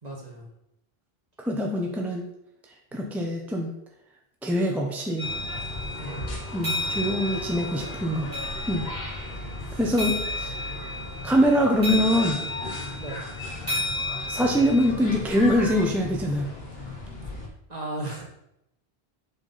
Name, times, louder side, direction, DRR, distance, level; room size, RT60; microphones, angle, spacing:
voice 1, 0.0-0.5 2.9-3.0 6.0-6.3 9.7-9.8 13.0-13.2 17.7-18.2, right 2 dB, 40° right, -2 dB, 1.9 m, -36 dB
voice 2, 1.4-2.2 2.9-3.7 4.4-5.3 6.5-8.3 8.7-8.9 9.8-10.7 11.2-12.4 14.3-16.5, equal, ahead, 0 dB, 0.9 m, -24 dB
sound 1, 5.2-17.5, left 2 dB, 70° left, 1.8 m, -37 dB
sound 2, 5.2-14.9, left 2 dB, 20° right, 3.1 m, -33 dB
7.7 x 6.0 x 4.2 m, 0.82 s
omnidirectional pair, 1.0 m